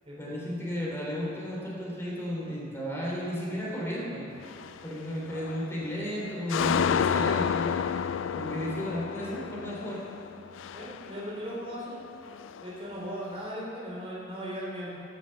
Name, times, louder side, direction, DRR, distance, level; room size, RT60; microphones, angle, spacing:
voice 1, 0.2-4.2 4.8-7.7 8.3-10.0, equal, 15° left, -5 dB, 3.2 m, -34 dB
sound 1, 4.4-4.8 5.3-5.9 6.2-11.7 11.9-13.1, left 7 dB, 75° left, 0.3 m, -31 dB
voice 2, 10.7-12.0 12.6-15.0, equal, 30° right, -6 dB, 3.7 m, -37 dB
15.0 x 7.2 x 6.8 m, 2.7 s
head